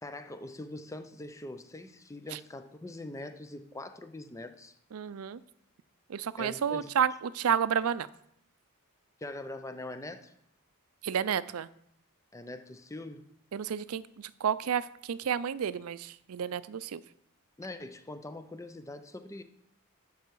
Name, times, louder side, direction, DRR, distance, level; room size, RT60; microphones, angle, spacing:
voice 1, 0.0-4.8 6.4-6.9 9.2-10.3 12.3-13.2 17.6-19.4, left 2 dB, 15° left, 9 dB, 0.6 m, -43 dB
voice 2, 4.9-5.4 6.1-8.1 11.0-11.7 13.5-17.0, right 8 dB, 80° right, 17 dB, 0.4 m, -31 dB
12.0 x 5.5 x 4.7 m, 0.74 s
head